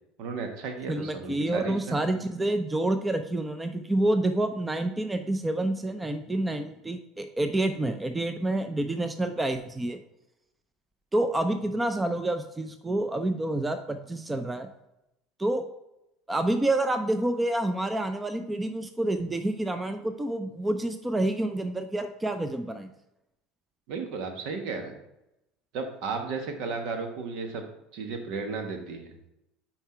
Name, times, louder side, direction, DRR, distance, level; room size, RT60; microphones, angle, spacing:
voice 1, 0.2-1.7 2.0-2.1 23.9-24.9 25.7-27.6 27.9-29.1, right 4 dB, 65° right, 5 dB, 1.2 m, -34 dB
voice 2, 0.9-10.0 11.1-14.7 15.4-15.6 16.3-22.9, right 1 dB, 15° right, 8 dB, 0.6 m, -28 dB
5.6 x 4.6 x 4.4 m, 0.88 s
hypercardioid pair, 90°, 0 cm